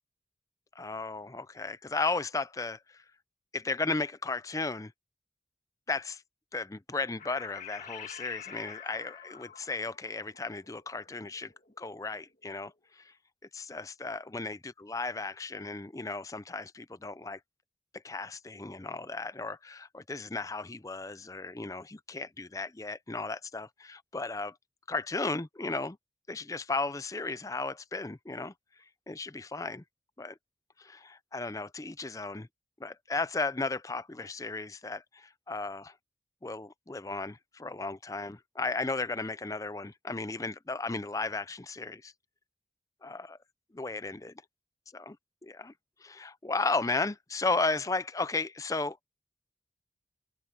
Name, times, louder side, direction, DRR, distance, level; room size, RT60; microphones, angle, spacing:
voice 1, 0.8-3.0 3.5-4.9 5.9-6.2 6.5-11.5 11.8-13.1 13.5-17.4 17.9-24.5 24.9-26.0 26.3-28.5 29.1-29.8 30.2-30.4 30.8-32.5 32.8-35.9 36.4-42.1 43.0-43.4 43.7-44.3 44.9-45.2 45.4-45.7 46.0-49.0, left 3 dB, 15° left, 0.5 m, -35 dB
sound 1, 7.2-12.0, left 8 dB, 45° left, 2.4 m, -47 dB
head